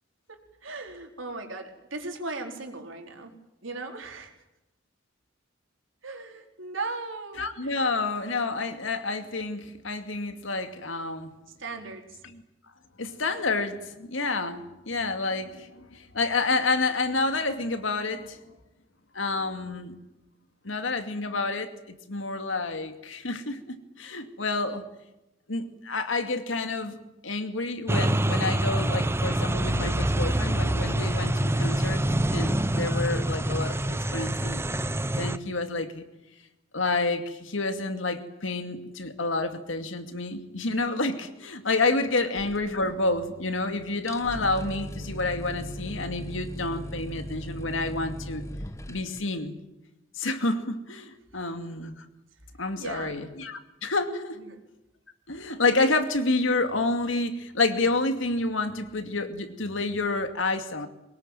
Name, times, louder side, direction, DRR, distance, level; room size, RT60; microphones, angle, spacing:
voice 1, 0.3-3.3 3.6-4.3 6.0-7.7 11.6-12.0 52.8-53.2 54.4-54.6, right 3 dB, 85° right, 3 dB, 4.3 m, -37 dB
voice 2, 7.4-11.3 12.2-12.4 13.0-18.4 19.1-19.9 20.6-24.8 25.5-27.0 27.2-32.0 32.3-34.6 35.2-36.0 36.7-48.4 48.9-49.6 50.2-52.0 52.6-54.4 55.3-60.9, left 3 dB, 80° left, 8 dB, 2.4 m, -29 dB
sound 1, 27.9-35.4, right 1 dB, 15° right, 0.8 m, -26 dB
sound 2, 42.4-43.4 43.6-43.7 44.0-49.2, equal, 15° left, 1.4 m, -38 dB
23.5 x 20.5 x 9.3 m, 0.95 s
head